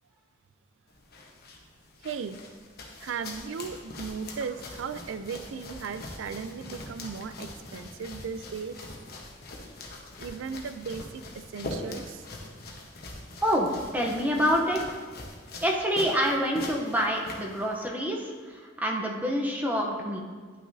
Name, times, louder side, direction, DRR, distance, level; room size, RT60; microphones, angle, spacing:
sound 1, 0.9-17.9, left 2 dB, 55° left, 1.0 m, -43 dB
voice 1, 2.0-2.4 3.0-8.9 10.2-12.3, right 6 dB, 85° right, 12 dB, 0.4 m, -37 dB
voice 2, 13.4-15.0 15.6-20.3, equal, 10° right, -1 dB, 0.7 m, -27 dB
10.5 x 6.0 x 2.7 m, 1.5 s
head